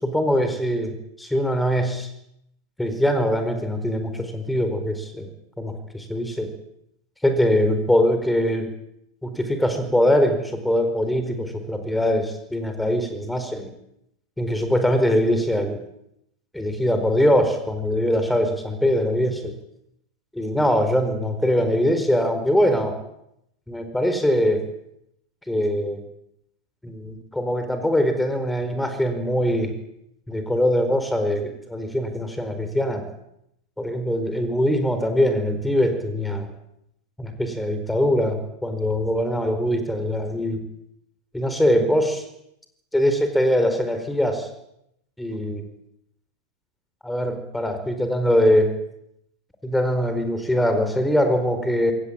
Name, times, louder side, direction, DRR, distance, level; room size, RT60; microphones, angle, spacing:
voice 1, 0.0-2.1 2.8-5.3 5.6-6.5 7.2-8.7 9.2-13.7 14.4-15.8 16.5-19.5 20.3-23.0 23.7-24.6 25.5-26.0 26.8-29.7 30.3-33.0 33.8-36.5 37.2-40.6 41.3-42.2 42.9-44.5 45.2-45.6 47.0-48.7 49.6-51.9, equal, 5° left, 7 dB, 4.5 m, -22 dB
27.5 x 21.0 x 8.8 m, 0.79 s
figure-of-eight pair, 90°, 0 cm